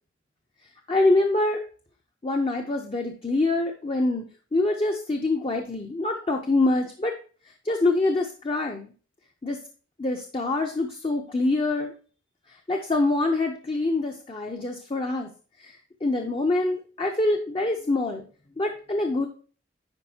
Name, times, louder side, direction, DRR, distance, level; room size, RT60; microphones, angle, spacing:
voice 1, 0.9-1.6 2.2-4.2 4.5-7.1 7.6-8.9 9.4-9.6 10.0-11.9 12.7-15.3 15.6-18.2 18.6-19.3, left 2 dB, 30° left, 3 dB, 0.5 m, -25 dB
9.7 x 4.7 x 2.7 m, 0.40 s
head